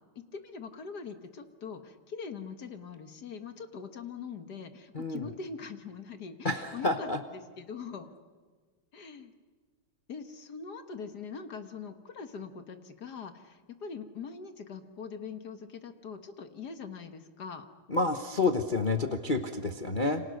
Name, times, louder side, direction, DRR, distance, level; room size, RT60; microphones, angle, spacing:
voice 1, 0.2-8.1 8.9-9.3 10.1-17.7, left 5 dB, 50° left, 8 dB, 1.8 m, -42 dB
voice 2, 4.9-5.3 6.4-7.2 17.9-20.2, left 3 dB, 35° left, 5 dB, 0.9 m, -29 dB
28.5 x 25.5 x 6.5 m, 1.5 s
omnidirectional pair, 2.4 m